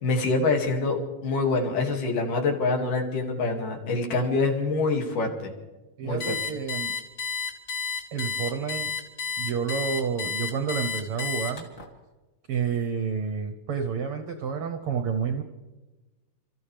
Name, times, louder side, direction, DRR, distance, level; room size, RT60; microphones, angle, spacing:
voice 1, 0.0-5.5 6.0-6.4, left 3 dB, 80° left, 2 dB, 3.9 m, -25 dB
voice 2, 6.0-6.9 8.1-8.9 9.4-11.7 12.5-15.4, right 6 dB, 65° right, 5 dB, 1.4 m, -29 dB
Alarm, 6.2-11.9, left 6 dB, 40° left, 2.8 m, -31 dB
29.0 x 14.5 x 3.4 m, 1.2 s
omnidirectional pair, 3.6 m